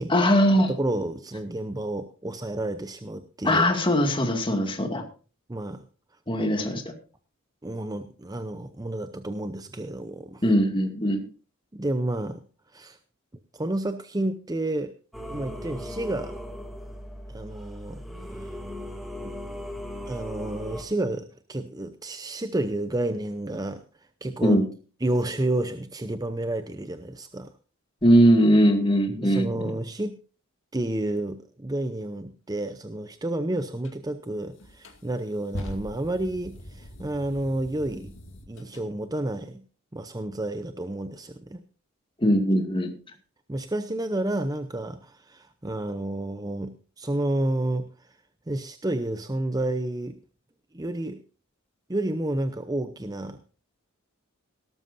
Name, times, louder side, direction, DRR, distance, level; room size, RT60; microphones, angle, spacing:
voice 1, 0.1-0.7 3.4-5.0 6.3-6.8 10.4-11.2 24.4-24.7 28.0-29.6 42.2-42.9, equal, 25° left, 4 dB, 2.3 m, -20 dB
voice 2, 0.7-3.7 5.5-5.8 7.6-10.4 11.7-12.4 12.7-13.0 13.5-14.9 15.3-16.4 17.3-18.0 18.4-18.5 19.2-19.3 20.1-23.8 24.2-24.6 25.0-27.5 29.2-30.2 30.7-38.1 38.5-39.6 39.9-41.6 43.5-47.9 48.5-50.2 50.7-51.2 51.9-53.4, right 1 dB, 20° right, 9 dB, 0.7 m, -30 dB
Singing / Musical instrument, 15.1-20.8, left 1 dB, ahead, 2.1 m, -38 dB
sound 1, 33.8-34.0 34.6-38.9, left 1 dB, 60° left, 2.3 m, -41 dB
18.0 x 13.0 x 2.7 m, 0.37 s
head